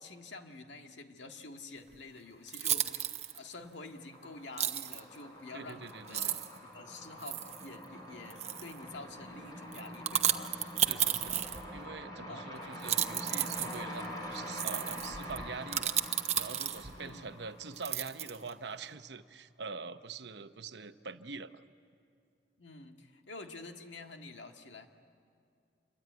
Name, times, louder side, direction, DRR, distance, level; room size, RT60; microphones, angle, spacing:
voice 1, 0.0-3.1 3.3-6.4 6.7-10.5 12.2-12.7 16.9-17.3 22.6-24.9, left 3 dB, 90° left, 4 dB, 1.9 m, -48 dB
sound 1, 1.9-2.0 2.5-3.4 4.6-5.0 5.7-5.8 6.1-6.6 7.2-7.7 8.3-8.8 9.7-11.9 12.7-17.0 17.8-18.5, right 10 dB, 35° right, 0.9 m, -33 dB
sound 2, 2.3-3.0 3.3-18.5, left 1 dB, 20° left, 4.8 m, -45 dB
voice 2, 5.5-6.4 10.8-21.6, right 4 dB, 75° right, 10 dB, 0.9 m, -44 dB
27.5 x 23.0 x 9.5 m, 2.4 s
head